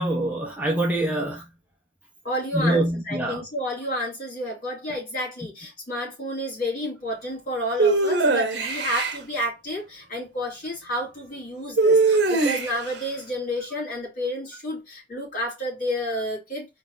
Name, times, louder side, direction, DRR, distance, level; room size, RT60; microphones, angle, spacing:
voice 1, 0.0-1.4 2.5-3.4, right 1 dB, 10° right, 1.0 m, -24 dB
voice 2, 2.2-16.7, equal, 50° left, 2.8 m, -30 dB
sound 1, 7.8-9.2 11.8-12.9, right 3 dB, 60° right, 1.1 m, -20 dB
4.4 x 2.9 x 3.8 m
head